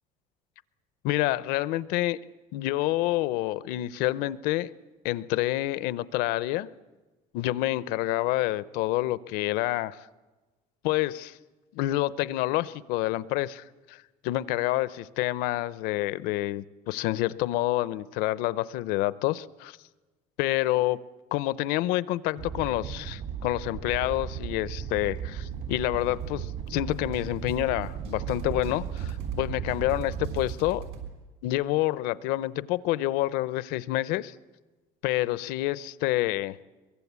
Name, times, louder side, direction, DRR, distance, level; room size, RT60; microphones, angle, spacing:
voice 1, 1.0-2.2 2.5-4.7 5.0-6.7 7.3-10.1 10.8-11.4 11.7-19.8 20.4-21.0 21.3-30.8 31.4-34.3 35.0-36.6, left 16 dB, 75° left, 0.7 m, -28 dB
Animal, 22.4-30.5, right 8 dB, 55° right, 1.7 m, -36 dB
sound 1, 25.5-31.1, right 7 dB, 85° right, 5.8 m, -42 dB
23.0 x 22.5 x 8.3 m
cardioid pair, 170°, 15 cm